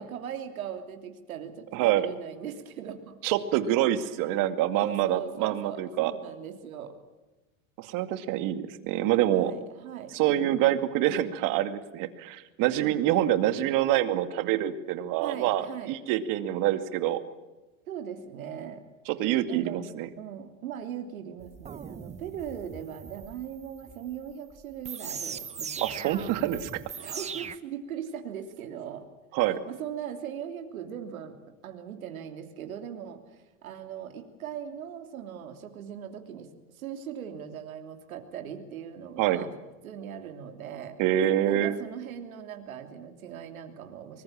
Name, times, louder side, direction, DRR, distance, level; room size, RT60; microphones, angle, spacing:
voice 1, 0.0-3.1 4.7-6.9 9.3-10.1 15.2-15.9 17.9-18.8 19.5-19.8 20.2-25.9 27.0-29.1 29.7-31.4 31.6-36.5 36.7-39.5 39.8-41.0 41.4-44.2, right 9 dB, 85° right, 6 dB, 3.2 m, -39 dB
voice 2, 1.7-2.1 3.2-6.1 7.8-9.5 10.1-17.2 19.1-20.1 25.8-26.7 29.3-29.6 39.2-39.4 41.0-41.8, right 12 dB, 50° right, 10 dB, 2.3 m, -26 dB
sound 1, 21.4-27.6, right 7 dB, 15° right, 1.0 m, -40 dB
24.0 x 21.0 x 7.5 m, 1.1 s
hypercardioid pair, 115°, 41 cm